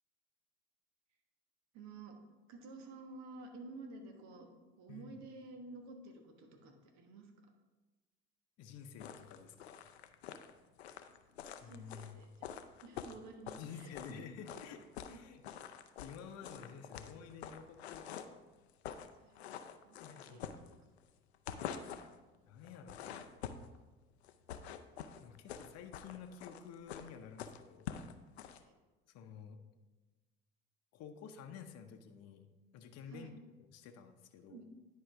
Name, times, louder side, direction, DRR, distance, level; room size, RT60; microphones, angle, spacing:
voice 1, 1.7-2.2 2.5-4.5 4.8-7.3 11.6-12.5 12.8-14.3 15.1-15.2 19.2-19.5 19.8-20.5 28.5-28.7 33.1-33.4 34.5-34.6, right 3 dB, 60° right, 4 dB, 1.3 m, -52 dB
voice 2, 4.9-5.2 8.6-9.8 11.6-12.2 13.6-15.4 16.0-18.3 20.0-20.6 22.5-23.2 25.2-28.0 29.1-29.6 30.9-32.5 32.7-33.3 33.7-34.6, left 7 dB, 55° left, 6 dB, 0.8 m, -51 dB
sound 1, 9.0-14.2 14.5-15.2 15.4-18.4 18.7-19.1 19.4-21.0 21.3-22.2 22.6-23.8 24.2-28.6, left 9 dB, 90° left, 0.5 m, -46 dB
10.0 x 4.8 x 3.4 m, 1.2 s
hypercardioid pair, 65°, 31 cm